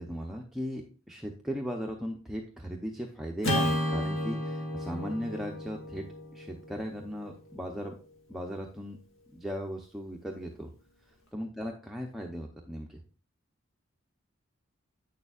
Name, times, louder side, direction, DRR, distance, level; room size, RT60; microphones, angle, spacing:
voice 1, 0.0-6.0 6.3-7.9 8.3-9.0 9.3-10.7 11.3-13.0, equal, ahead, 0 dB, 0.6 m, -37 dB
Acoustic guitar / Strum, 3.4-7.9, equal, 75° left, 1.9 m, -33 dB
8.7 x 6.8 x 2.4 m, 0.37 s
head